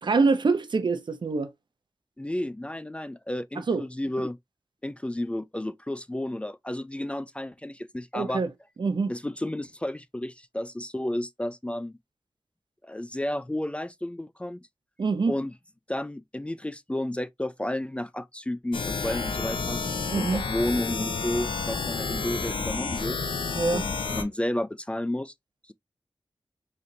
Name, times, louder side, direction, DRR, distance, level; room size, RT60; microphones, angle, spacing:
voice 1, 0.0-1.5 3.7-3.9 8.1-8.5 8.8-9.1 15.0-15.3 20.1-20.4 23.5-23.8, right 4 dB, 65° right, 0.7 m, -25 dB
voice 2, 2.2-4.4 4.8-8.4 9.1-12.0 12.8-14.7 15.3-15.5 15.9-19.8 20.2-23.2 23.7-25.3, left 1 dB, 15° left, 0.3 m, -32 dB
sound 1, 18.7-24.2, left 4 dB, 90° left, 0.7 m, -30 dB
3.8 x 3.4 x 2.7 m
cardioid pair, 55°, 8 cm